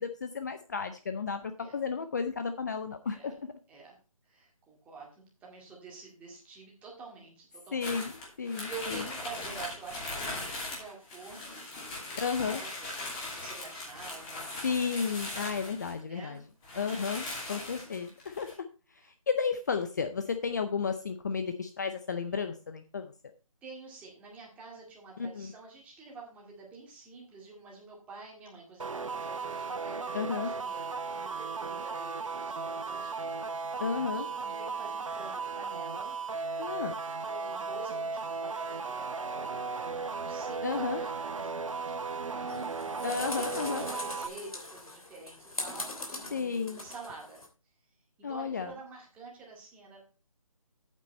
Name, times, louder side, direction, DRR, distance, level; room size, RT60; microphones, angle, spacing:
voice 1, 0.0-3.5 7.7-8.1 8.4-9.0 12.2-12.6 14.6-16.4 16.8-18.5 18.9-23.1 25.2-25.5 30.1-30.5 33.8-34.2 36.6-36.9 40.6-41.0 43.0-43.8 46.3-46.8 48.2-48.7, left 5 dB, 30° left, 8 dB, 0.5 m, -33 dB
voice 2, 4.2-8.0 8.4-11.6 12.4-14.8 16.0-16.9 17.4-17.8 23.6-33.8 34.1-36.1 37.3-43.3 43.6-47.4 48.2-50.0, right 4 dB, 5° right, -2 dB, 2.1 m, -48 dB
sound 1, 7.8-16.0 16.4-16.5 16.6-18.5, left 2 dB, 15° left, 2.6 m, -39 dB
sound 2, 28.8-44.3, right 4 dB, 65° right, 1.1 m, -36 dB
sound 3, 42.5-47.5, left 2 dB, 85° left, 3.1 m, -41 dB
8.6 x 8.4 x 4.1 m, 0.35 s
figure-of-eight pair, 160°, 18 cm